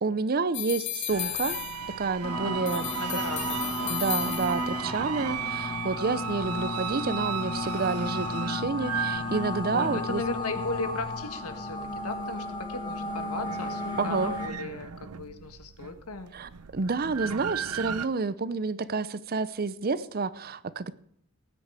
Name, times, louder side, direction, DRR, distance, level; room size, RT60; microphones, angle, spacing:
voice 1, 0.0-1.6 2.0-3.2 3.9-10.2 14.0-14.3 16.3-20.9, right 4 dB, 45° right, 16 dB, 0.6 m, -29 dB
sound 1, 0.5-2.2 2.7-4.9, left 13 dB, 50° left, 1.0 m, -35 dB
sound 2, 1.1-18.1, right 8 dB, 85° right, 0.6 m, -37 dB
sound 3, 2.2-14.5, left 2 dB, 20° left, 1.4 m, -34 dB
voice 2, 2.4-4.4 6.5-6.7 9.7-16.3, left 3 dB, 80° left, 9 dB, 1.5 m, -37 dB
18.0 x 9.4 x 4.8 m, 0.67 s
head